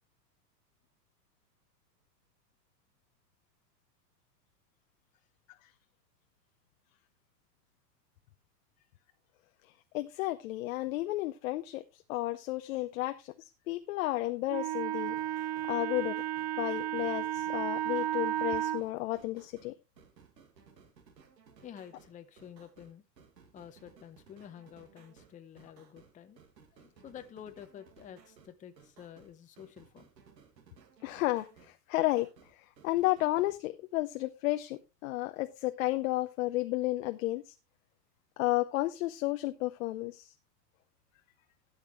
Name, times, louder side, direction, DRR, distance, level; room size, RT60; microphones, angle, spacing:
voice 1, 9.9-13.3 13.7-15.2 15.7-16.2 16.6-19.7 31.0-32.3 32.6-37.5 38.4-40.3, left 17 dB, 55° left, 0.8 m, -32 dB
Wind instrument woodwind instrument, 14.5-18.8, right 12 dB, 30° right, 0.4 m, -33 dB
sound 1, 14.9-33.6, right 6 dB, 80° right, 2.1 m, -60 dB
voice 2, 21.6-23.0 23.5-26.4 26.7-30.1, left 9 dB, 15° left, 0.7 m, -50 dB
12.5 x 8.1 x 3.1 m
hypercardioid pair, 105°, 49 cm